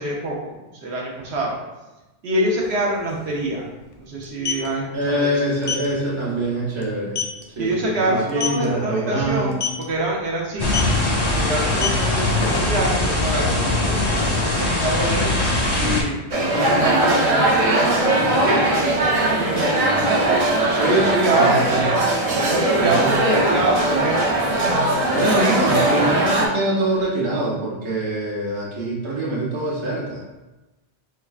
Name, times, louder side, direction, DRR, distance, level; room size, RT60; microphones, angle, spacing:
voice 1, 0.0-1.6 2.2-3.7 4.0-5.5 7.6-10.9 11.3-15.3 15.8-16.2 16.5-19.3 20.9-21.6 22.5-24.6 25.3-25.5, right 1 dB, 75° right, -3 dB, 1.0 m, -26 dB
sound 1, 2.6-2.7 3.0-3.2 4.2-4.7 5.6-5.9 6.3-6.5 6.8-6.9 7.2-7.4 8.3-8.7 9.5-9.8 10.7-11.0 11.6-12.9, left 6 dB, 90° left, 0.9 m, -25 dB
voice 2, 4.9-7.2 7.5-9.6 18.2-18.3 20.7-21.9 22.8-23.1 25.1-30.2, right 1 dB, 30° right, -6 dB, 0.8 m, -24 dB
sound 2, 10.6-16.0, left 2 dB, 35° left, 0.4 m, -21 dB
sound 3, 16.3-26.5, right 1 dB, 50° right, 0.4 m, -19 dB
4.8 x 2.2 x 2.3 m, 1.1 s
omnidirectional pair, 1.1 m